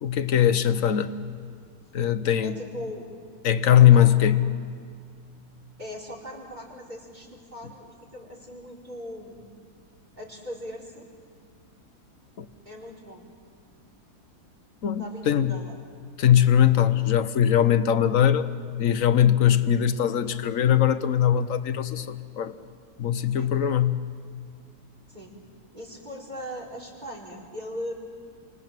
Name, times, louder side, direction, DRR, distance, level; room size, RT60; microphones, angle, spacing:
voice 1, 0.0-1.1 1.9-2.5 3.4-4.4 12.4-12.5 14.8-15.5 16.2-18.5 18.8-22.5 23.0-24.0, left 10 dB, 55° left, 1.3 m, -20 dB
voice 2, 2.4-3.1 3.8-4.3 5.8-9.5 10.1-11.0 12.6-13.3 15.0-15.8 23.3-23.5 25.1-25.4 25.7-27.9, equal, 25° right, 4.7 m, -39 dB
29.0 x 25.0 x 7.6 m
omnidirectional pair, 1.8 m